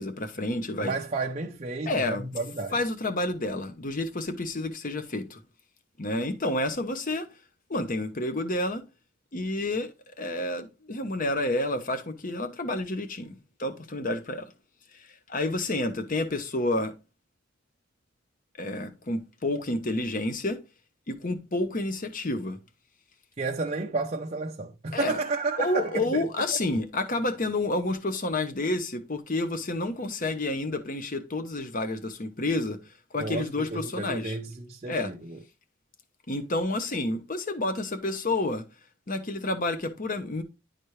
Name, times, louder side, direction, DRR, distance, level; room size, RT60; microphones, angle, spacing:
voice 1, 0.0-0.9 1.9-2.2 2.7-5.4 6.0-7.2 7.7-8.8 9.3-14.5 14.9-16.9 18.6-20.6 21.1-22.6 24.9-25.2 25.6-32.8 33.1-34.4 34.9-35.1 36.3-38.6 39.1-40.4, left 2 dB, 40° left, 0.9 m, -29 dB
voice 2, 0.8-2.7 23.4-26.3 33.2-35.4, right 3 dB, 30° right, 0.5 m, -32 dB
10.5 x 4.2 x 3.2 m
head